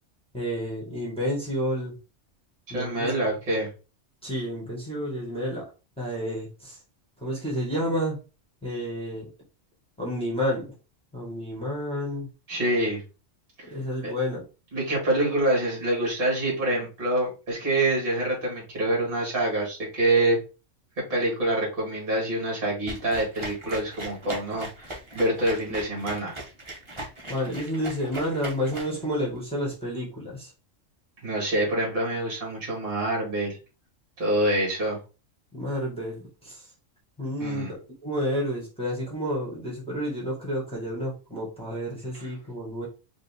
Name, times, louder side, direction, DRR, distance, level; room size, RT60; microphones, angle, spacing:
voice 1, 0.3-2.0 2.7-3.1 4.2-5.7 6.0-6.8 7.2-8.2 8.6-9.3 10.0-10.7 11.1-12.3 13.7-14.4 27.3-30.5 35.5-36.6 37.2-42.9, equal, 5° left, -4 dB, 1.7 m, -30 dB
voice 2, 2.7-3.7 12.5-13.0 13.6-13.7 14.0-14.1 14.7-20.4 21.1-26.3 31.2-33.6 34.2-35.0 37.4-37.7, right 1 dB, 45° right, -4 dB, 2.2 m, -26 dB
sound 1, 22.9-29.4, right 2 dB, 25° right, 1.1 m, -39 dB
5.1 x 2.6 x 3.5 m, 0.32 s
omnidirectional pair, 1.3 m